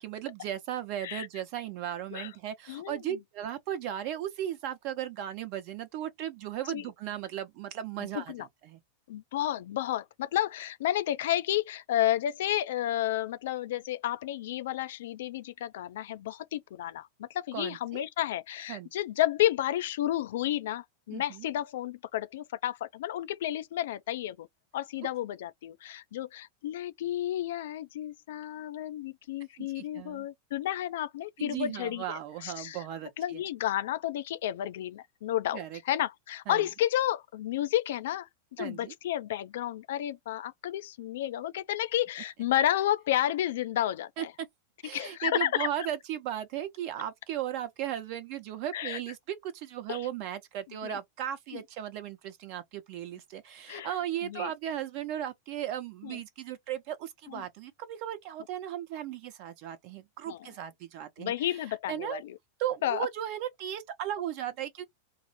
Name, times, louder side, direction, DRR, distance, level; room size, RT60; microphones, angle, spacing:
voice 1, 0.0-8.8 17.5-18.0 18.7-18.9 21.1-21.5 29.6-30.3 31.4-33.4 35.5-35.8 36.5-36.6 38.6-38.9 44.2-44.3 44.8-61.3 61.9-62.2 62.6-64.9, right 11 dB, 45° right, 0.9 m, -36 dB
voice 2, 2.7-3.2 6.7-6.8 8.0-8.5 9.1-24.5 24.7-32.8 33.2-44.3 44.9-45.7 48.7-49.0 49.9-50.1 50.8-51.0 51.5-51.6 53.7-53.9 54.2-54.5 56.0-56.2 57.3-57.4 60.3-60.5 61.2-62.4 62.8-63.1, left 13 dB, 55° left, 0.3 m, -31 dB
4.6 x 2.0 x 2.8 m
figure-of-eight pair, 90°, 0 cm